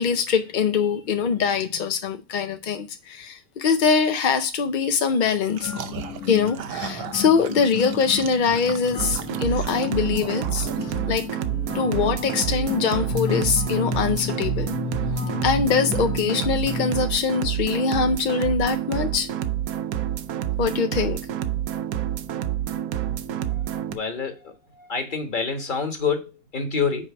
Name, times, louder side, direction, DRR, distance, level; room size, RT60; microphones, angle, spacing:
voice 1, 0.0-5.7 6.3-11.3 11.7-14.7 15.4-19.3 20.6-21.2, left 6 dB, 60° left, 0.5 m, -23 dB
sound 1, 5.5-11.2, right 9 dB, 60° right, 0.6 m, -38 dB
sound 2, 5.6-17.0, left 6 dB, 80° left, 1.8 m, -33 dB
sound 3, 9.0-24.0, right 11 dB, 80° right, 1.1 m, -28 dB
voice 2, 23.9-24.5 24.8-27.1, left 5 dB, 35° left, 1.4 m, -27 dB
5.8 x 4.6 x 5.9 m
omnidirectional pair, 1.5 m